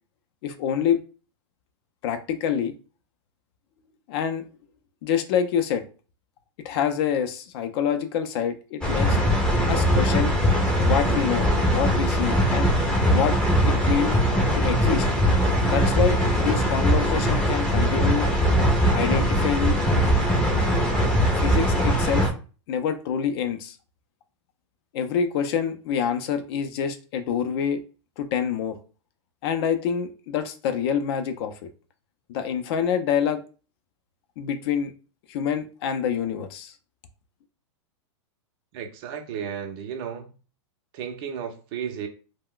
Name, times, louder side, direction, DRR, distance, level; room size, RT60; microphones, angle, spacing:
voice 1, 0.4-1.0 2.0-2.7 4.1-4.4 5.0-5.8 6.6-9.2 9.7-10.4 10.9-12.7 13.1-13.4 13.7-14.2 14.5-15.1 15.7-18.3 18.9-19.8 21.3-22.3 22.7-23.8 24.9-27.8 28.2-28.8 29.4-31.5 32.3-33.4 34.4-34.9 35.3-36.7, left 8 dB, 50° left, 0.5 m, -26 dB
sound 1, 8.8-22.3, equal, 5° left, 0.6 m, -21 dB
voice 2, 38.7-40.3 40.9-42.1, right 8 dB, 50° right, 0.6 m, -33 dB
2.2 x 2.1 x 3.7 m
hypercardioid pair, 135°, 16 cm